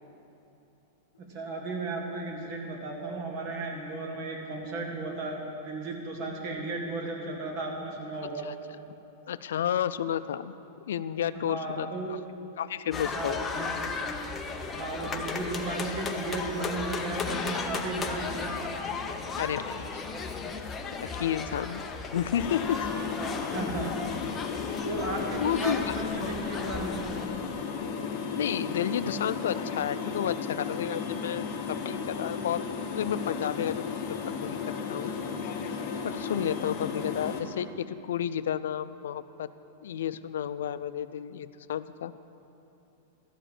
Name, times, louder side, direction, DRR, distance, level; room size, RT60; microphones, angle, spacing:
voice 1, 1.2-8.5 11.3-12.1 13.1-13.9 14.7-18.6 23.5-24.2 24.8-27.1, right 2 dB, 45° right, 0 dB, 1.9 m, -35 dB
voice 2, 9.3-10.5 10.9-12.2 12.6-13.4 19.4-20.0 21.0-21.8 22.1-22.9 25.4-25.9 26.2-26.3 28.4-32.6 32.9-34.0 34.4-34.6 34.9-35.2 36.0-39.5 39.8-42.1, left 9 dB, 80° left, 14 dB, 0.4 m, -31 dB
sound 1, 12.9-27.3, left 4 dB, 15° left, 0.7 m, -35 dB
sound 2, 22.4-37.4, left 6 dB, 40° left, 1.2 m, -34 dB
13.0 x 5.0 x 8.7 m, 2.9 s
supercardioid pair, 145°, 0 cm